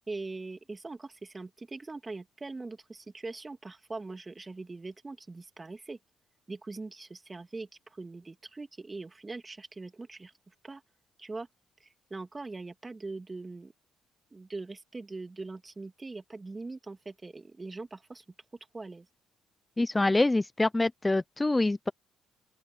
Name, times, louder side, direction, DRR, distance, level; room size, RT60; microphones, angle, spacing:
voice 1, 0.1-6.0 6.5-10.3 10.6-10.8 11.2-11.5 11.8-13.7 14.3-18.2 18.7-19.1, right 3 dB, 25° right, 2.9 m, -41 dB
voice 2, 19.8-21.9, left 2 dB, 20° left, 0.8 m, -25 dB
open air
hypercardioid pair, 55°, 0 cm